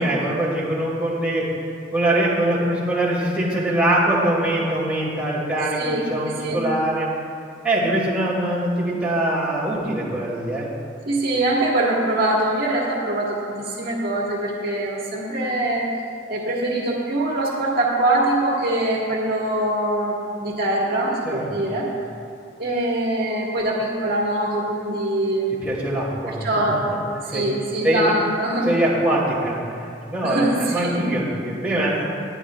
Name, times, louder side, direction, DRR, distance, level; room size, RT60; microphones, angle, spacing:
voice 1, 0.0-1.5 1.9-7.1 7.6-10.7 21.2-21.7 25.6-26.4 27.3-27.4 27.8-28.1 28.6-29.6 30.1-32.0, right 1 dB, 5° right, -7 dB, 2.5 m, -22 dB
voice 2, 5.6-6.6 11.1-15.9 16.3-21.9 22.6-25.5 26.3-26.9 27.2-28.7 30.2-31.0, right 1 dB, 55° right, -4 dB, 1.9 m, -23 dB
20.5 x 10.0 x 2.5 m, 2.7 s
head